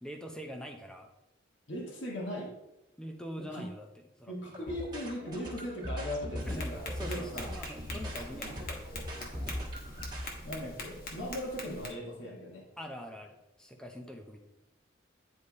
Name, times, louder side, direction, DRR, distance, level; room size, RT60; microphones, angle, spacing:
voice 1, 0.0-1.1 3.0-4.3 6.5-9.7 10.6-10.7 12.8-14.4, equal, 5° left, 4 dB, 0.6 m, -44 dB
voice 2, 1.7-2.5 3.5-3.7 4.3-7.5 10.4-12.6, equal, 70° left, -1 dB, 1.5 m, -38 dB
sound 1, 4.5-10.3, equal, 20° right, 1.4 m, -39 dB
Tap, 6.4-11.9, left 2 dB, 45° left, 1.2 m, -44 dB
9.7 x 3.3 x 4.2 m, 0.95 s
head